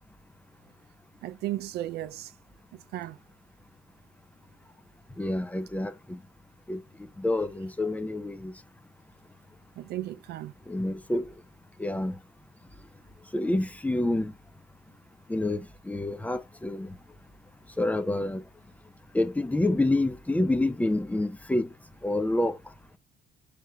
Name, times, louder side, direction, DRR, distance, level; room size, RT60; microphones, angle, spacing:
voice 1, 1.2-2.3 2.9-3.2 9.8-10.5, right 14 dB, 70° right, 0.5 m, -34 dB
voice 2, 5.2-5.9 6.7-6.8 7.2-8.5 10.7-11.2 11.8-12.1 13.3-14.3 15.3-15.6 15.9-16.9 17.8-18.4 19.1-21.7 22.0-22.5, left 1 dB, 10° left, 0.6 m, -27 dB
4.6 x 3.3 x 3.4 m
cardioid pair, 110°, 17 cm